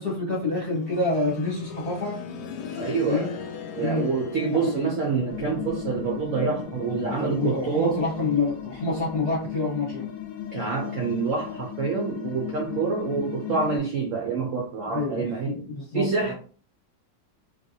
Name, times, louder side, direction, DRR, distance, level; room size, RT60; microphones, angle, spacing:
voice 1, 0.0-2.2 3.1-3.3 3.7-4.1 4.5-4.7 7.1-10.0 14.9-16.3, left 3 dB, 40° left, 0.9 m, -27 dB
sound 1, 0.7-11.5 11.8-11.9 12.8-12.9, left 7 dB, 70° left, 1.0 m, -40 dB
voice 2, 2.7-3.3 3.7-8.0 10.5-15.5 15.9-16.3, right 5 dB, 70° right, 0.7 m, -27 dB
sound 2, 5.3-13.8, left 10 dB, 90° left, 1.3 m, -36 dB
3.2 x 2.6 x 2.6 m
omnidirectional pair, 2.0 m